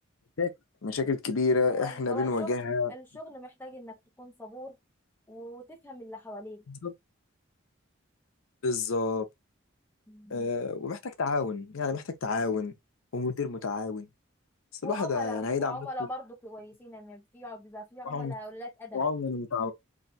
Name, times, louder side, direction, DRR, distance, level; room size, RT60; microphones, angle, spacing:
voice 1, 0.8-2.9 6.7-6.9 8.6-9.2 10.3-12.7 13.1-14.1 14.8-15.8 18.0-18.3 18.9-19.7, left 4 dB, 80° left, 0.6 m, -29 dB
voice 2, 1.7-2.6 2.9-4.8 5.3-6.6 10.1-10.5 14.8-19.0, left 1 dB, 10° left, 0.5 m, -41 dB
2.7 x 2.3 x 4.0 m
head